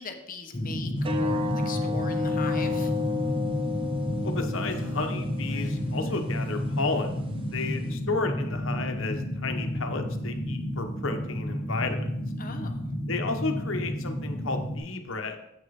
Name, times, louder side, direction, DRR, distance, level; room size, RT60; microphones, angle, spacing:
voice 1, 0.0-2.9 12.4-12.8, left 4 dB, 40° left, 5 dB, 0.9 m, -40 dB
sound 1, 0.5-14.8, equal, 25° left, 1.3 m, -31 dB
sound 2, 1.0-7.9, left 4 dB, 25° right, 0.8 m, -33 dB
Female speech woman speaking, 2.5-3.2 4.6-6.9, right 1 dB, 70° right, 2.5 m, -45 dB
voice 2, 4.2-7.2 7.5-12.1 13.1-15.4, left 3 dB, 65° left, 6 dB, 1.0 m, -32 dB
7.9 x 6.6 x 4.1 m, 0.79 s
head